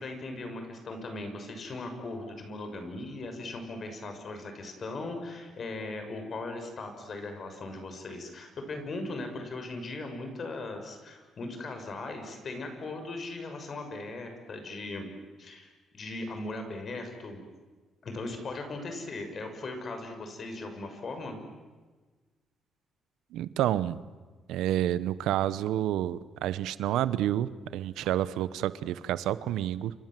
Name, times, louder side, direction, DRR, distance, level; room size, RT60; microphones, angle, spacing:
voice 1, 0.0-15.1 15.4-17.4 18.0-21.4, left 2 dB, 50° left, 6 dB, 6.3 m, -38 dB
voice 2, 23.3-24.0 24.5-29.9, right 12 dB, 90° right, 16 dB, 0.9 m, -29 dB
29.0 x 26.0 x 7.7 m, 1.3 s
cardioid pair, 90°, 0 cm